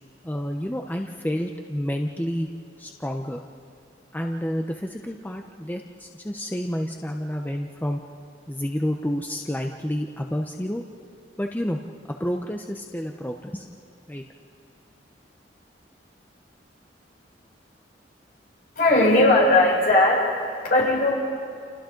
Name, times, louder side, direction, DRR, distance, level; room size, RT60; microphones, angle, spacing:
voice 1, 0.2-2.5 2.8-3.4 4.1-8.0 8.5-10.8 11.4-11.8 12.2-13.7 14.1-14.2, equal, 10° left, 2 dB, 0.9 m, -29 dB
voice 2, 18.8-20.3 20.6-21.1, left 2 dB, 60° left, -4 dB, 7.0 m, -18 dB
29.5 x 29.0 x 3.9 m, 2.4 s
head